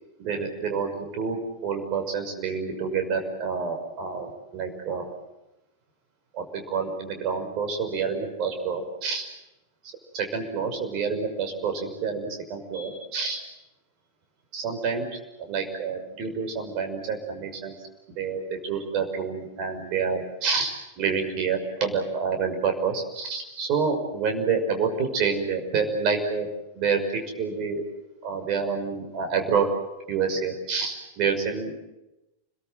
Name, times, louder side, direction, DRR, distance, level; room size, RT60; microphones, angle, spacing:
voice 1, 0.2-5.0 6.3-9.2 10.1-13.4 14.5-15.1 15.4-17.7 18.1-20.7 21.0-26.5 26.7-27.8 28.2-29.7 30.1-31.7, right 5 dB, 40° right, 5 dB, 6.0 m, -28 dB
30.0 x 22.0 x 7.8 m, 0.95 s
figure-of-eight pair, 90°, 0 cm